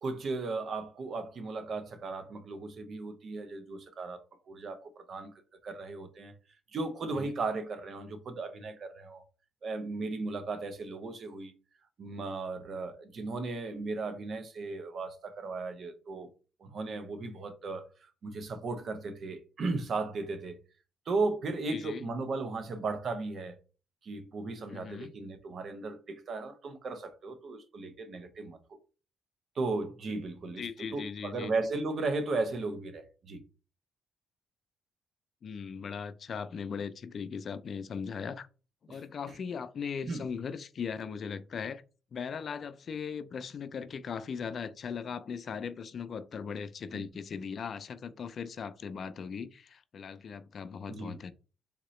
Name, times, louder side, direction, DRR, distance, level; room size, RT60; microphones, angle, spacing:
voice 1, 0.0-5.3 5.6-6.3 6.7-9.2 9.6-11.5 12.0-16.3 16.6-20.6 21.1-23.6 24.0-28.6 29.6-30.6 30.9-33.4 38.9-39.0 40.0-40.2 46.9-47.1 50.9-51.2, right 3 dB, 55° right, 0.8 m, -36 dB
voice 2, 21.7-22.1 24.7-25.1 30.6-31.5 35.4-38.5 38.8-41.8 42.1-51.3, left 6 dB, 50° left, 0.4 m, -39 dB
3.6 x 2.8 x 3.1 m
cardioid pair, 90°, 0 cm